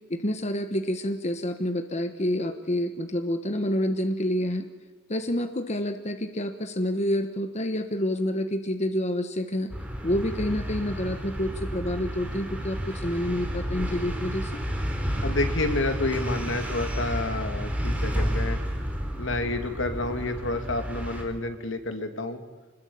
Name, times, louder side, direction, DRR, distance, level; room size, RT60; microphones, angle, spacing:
voice 1, 0.1-4.7 5.1-9.7 10.0-14.6, left 1 dB, 35° left, 7 dB, 1.3 m, -28 dB
sound 1, 9.7-21.2, equal, 5° right, 4.2 m, -31 dB
voice 2, 15.2-18.6 19.2-22.4, left 2 dB, 70° left, 7 dB, 2.6 m, -29 dB
26.5 x 21.0 x 8.7 m, 1.3 s
head